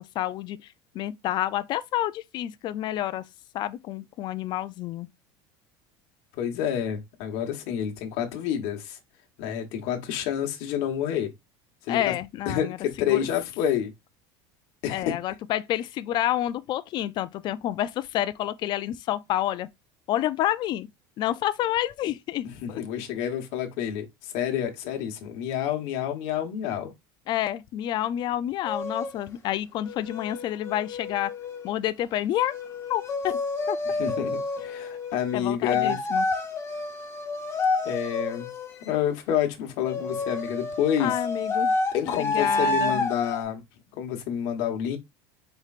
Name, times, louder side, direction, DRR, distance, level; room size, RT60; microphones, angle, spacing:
voice 1, 0.2-3.2 3.5-5.1 11.9-13.2 14.9-19.7 20.1-20.9 21.2-22.8 27.3-31.3 31.6-32.5 32.9-33.4 33.7-33.8 35.3-36.3 41.0-41.8 42.1-43.0, left 13 dB, 40° left, 0.4 m, -29 dB
voice 2, 6.3-9.0 9.4-11.3 11.9-12.1 12.5-13.9 14.8-15.1 22.6-26.9 34.0-36.0 37.8-38.5 38.8-41.2 41.9-43.6 43.9-45.0, left 9 dB, 65° left, 1.1 m, -28 dB
sound 1, 28.7-29.1 29.8-31.7 32.5-35.4 35.7-39.0 39.8-43.4, left 3 dB, 25° left, 0.9 m, -29 dB
4.3 x 3.1 x 2.4 m
supercardioid pair, 135°, 11 cm